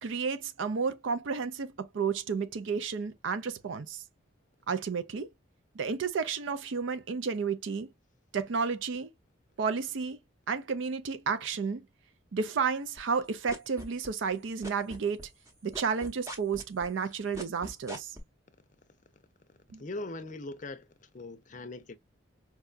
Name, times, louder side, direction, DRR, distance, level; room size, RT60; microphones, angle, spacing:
voice 1, 0.0-4.0 4.7-5.3 5.7-7.9 8.3-9.1 9.6-10.2 10.5-11.8 12.3-15.3 15.6-18.2 19.7-19.8, right 5 dB, 75° right, 0.4 m, -32 dB
sound 1, 13.0-14.4 14.6-18.2, right 1 dB, 15° right, 0.8 m, -41 dB
voice 2, 19.8-22.0, left 2 dB, 40° left, 0.5 m, -41 dB
4.6 x 2.2 x 2.4 m
head